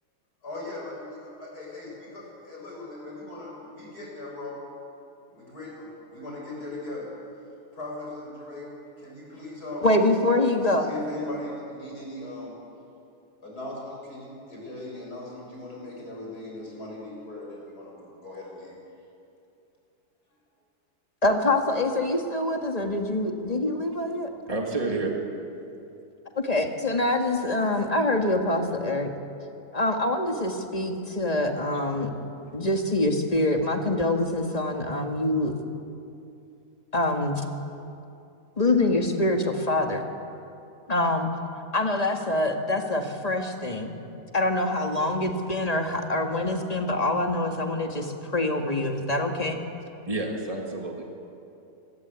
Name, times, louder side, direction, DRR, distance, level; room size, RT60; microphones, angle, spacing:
voice 1, 0.4-4.6 5.3-7.1 7.7-9.9 10.8-12.6 13.4-18.8, left 2 dB, 70° left, -2 dB, 7.7 m, -39 dB
voice 2, 9.8-10.9 21.2-24.3 26.4-29.1 29.7-32.1 32.5-35.6 36.9-37.4 38.6-40.0 40.9-41.3 41.7-43.9 44.3-49.6, left 2 dB, 25° left, 3 dB, 2.0 m, -25 dB
voice 3, 24.5-25.1 50.1-51.0, right 2 dB, 20° right, 0 dB, 3.0 m, -29 dB
25.5 x 21.0 x 8.4 m, 2.7 s
omnidirectional pair, 1.8 m